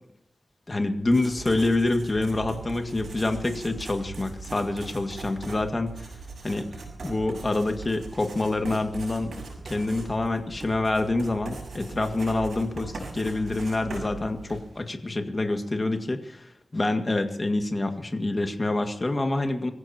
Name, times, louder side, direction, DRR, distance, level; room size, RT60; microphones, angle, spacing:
voice 1, 0.7-5.9 6.4-6.7 7.0-9.3 9.7-19.7, left 2 dB, 30° left, 5 dB, 2.0 m, -27 dB
Writing, 1.0-14.8, right 3 dB, 85° right, 6.8 m, -40 dB
25.0 x 15.5 x 2.9 m, 0.77 s
wide cardioid pair, 100°, 0 cm